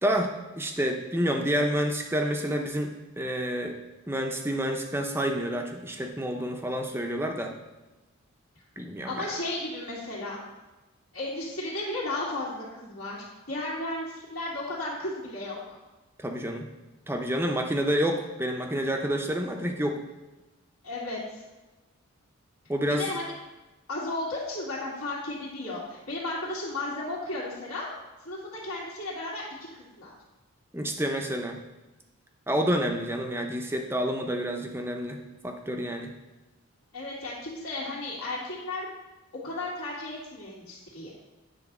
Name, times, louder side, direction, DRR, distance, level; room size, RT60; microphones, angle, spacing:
voice 1, 0.0-3.8 4.1-7.5 8.8-9.3 16.2-16.7 17.1-20.0 22.7-23.0 30.7-31.6 32.5-36.1, equal, 10° right, 3 dB, 0.7 m, -29 dB
voice 2, 9.1-10.4 11.1-13.2 13.5-15.8 20.8-21.4 23.0-23.3 23.9-27.9 28.2-30.1 36.9-38.9 39.4-41.1, left 2 dB, 75° left, -9 dB, 2.0 m, -34 dB
9.5 x 3.9 x 6.0 m, 1.1 s
head